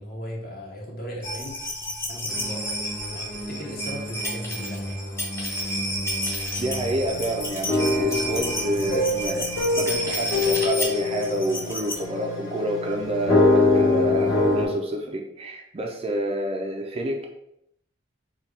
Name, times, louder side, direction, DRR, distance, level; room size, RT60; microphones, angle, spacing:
voice 1, 0.0-1.5 2.1-2.8 3.1-5.0, equal, 50° left, -2 dB, 1.0 m, -37 dB
sound 1, 1.2-12.0 13.1-13.2 13.3-13.4, equal, 15° left, 0.6 m, -31 dB
sound 2, 2.3-14.7, left 3 dB, 80° left, 1.1 m, -26 dB
voice 2, 6.6-17.3, right 1 dB, 30° right, 1 dB, 0.4 m, -28 dB
4.3 x 2.3 x 3.2 m, 0.78 s
head